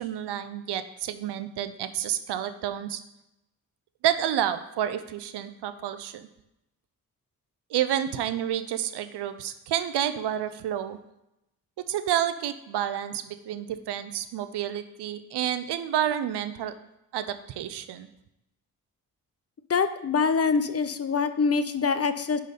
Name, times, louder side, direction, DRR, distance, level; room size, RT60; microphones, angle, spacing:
voice 1, 0.0-3.0 4.0-6.3 7.7-11.0 11.9-16.7 17.1-18.1, right 11 dB, 75° right, 11 dB, 0.6 m, -29 dB
voice 2, 19.7-22.4, left 5 dB, 35° left, 12 dB, 0.6 m, -24 dB
10.0 x 4.0 x 4.1 m, 0.87 s
supercardioid pair, 45°, 41 cm